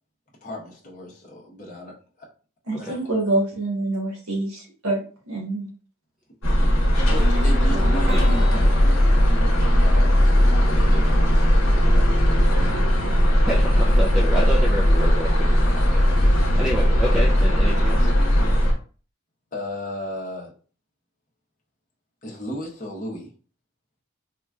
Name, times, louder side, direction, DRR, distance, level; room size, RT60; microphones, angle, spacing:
voice 1, 0.4-1.9 2.8-3.3 6.6-8.7 9.8-12.8 19.5-20.5 22.2-23.3, equal, 35° left, -3 dB, 1.0 m, -35 dB
voice 2, 2.7-5.7, right 2 dB, 80° right, -1 dB, 1.3 m, -26 dB
sound 1, 6.4-18.7, equal, 65° left, 1.0 m, -18 dB
sound 2, 7.2-11.1, right 1 dB, 45° right, 0.6 m, -36 dB
voice 3, 13.4-18.1, right 1 dB, 5° right, -4 dB, 0.4 m, -29 dB
3.6 x 2.9 x 2.3 m, 0.38 s
head